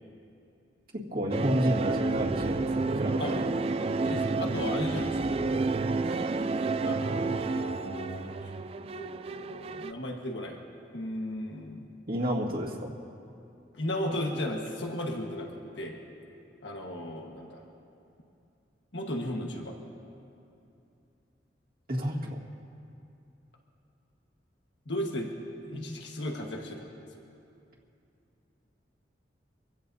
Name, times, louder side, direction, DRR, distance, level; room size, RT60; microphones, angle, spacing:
voice 1, 1.1-3.5 12.1-12.9 21.9-22.4 25.7-25.8, equal, 55° right, -5 dB, 1.8 m, -30 dB
sound 1, 1.3-9.9, right 3 dB, 30° right, 0.3 m, -30 dB
voice 2, 4.0-8.3 8.9-10.6 10.9-11.9 13.7-16.0 16.6-17.6 18.9-19.8 24.9-25.3 25.6-26.9, left 1 dB, 80° left, 1 dB, 1.4 m, -36 dB
25.5 x 16.5 x 2.7 m, 2.7 s
head